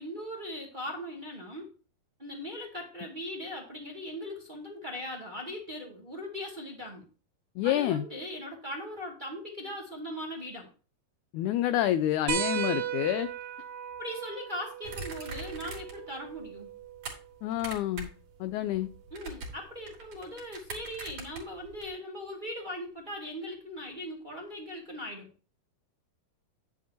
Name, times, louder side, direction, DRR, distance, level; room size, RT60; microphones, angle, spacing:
voice 1, 0.0-1.7 2.2-7.1 7.6-10.7 14.0-16.7 19.1-25.3, left 1 dB, 20° right, -1 dB, 1.6 m, -39 dB
voice 2, 7.6-8.0 11.3-13.3 17.4-18.1 18.4-18.9, left 12 dB, 85° left, 12 dB, 1.7 m, -28 dB
sound 1, 12.3-17.4 18.9-19.0 20.7-20.8, right 10 dB, 75° right, 3.3 m, -36 dB
sound 2, 14.8-16.1 16.4-17.1 17.5-18.2 18.5-21.9, right 3 dB, 55° right, 3.9 m, -42 dB
10.0 x 9.2 x 2.9 m, 0.38 s
omnidirectional pair, 4.0 m